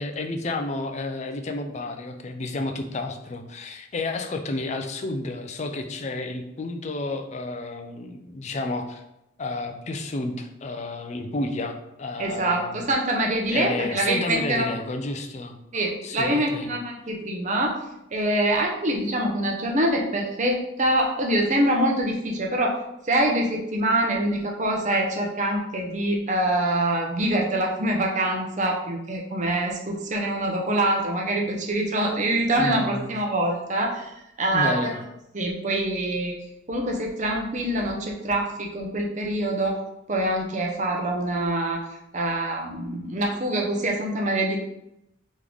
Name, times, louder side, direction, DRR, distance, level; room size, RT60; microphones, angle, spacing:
voice 1, 0.0-9.0 9.4-12.9 13.5-15.6 16.0-16.7 32.6-33.1 34.5-35.0, left 2 dB, 35° left, 6 dB, 0.4 m, -31 dB
voice 2, 12.2-14.7 15.7-17.7 18.1-34.1 34.4-34.9 35.3-36.4 36.7-39.8 40.1-41.8 42.1-44.6, right 1 dB, 40° right, 0 dB, 0.7 m, -25 dB
3.8 x 3.1 x 3.5 m, 0.85 s
head